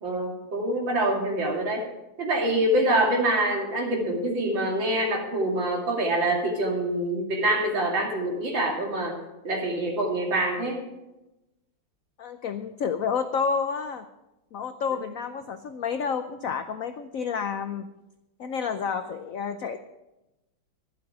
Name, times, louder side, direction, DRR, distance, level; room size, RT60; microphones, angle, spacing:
voice 1, 0.0-1.8 2.2-9.2 9.4-10.8 14.9-15.0, right 1 dB, 65° right, 0 dB, 3.3 m, -25 dB
voice 2, 12.2-14.0 14.5-17.9 18.4-19.8, left 6 dB, 70° left, 9 dB, 0.8 m, -30 dB
12.0 x 11.5 x 4.9 m, 0.95 s
omnidirectional pair, 2.2 m